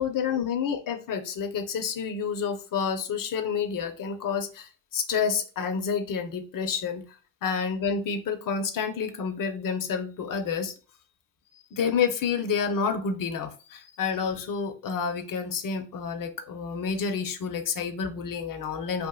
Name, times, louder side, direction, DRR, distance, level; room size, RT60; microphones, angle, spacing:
voice 1, 0.0-7.0 7.4-10.7 11.7-19.1, left 6 dB, 60° left, 7 dB, 0.8 m, -29 dB
5.2 x 2.5 x 2.3 m, 0.35 s
hypercardioid pair, 45°, 37 cm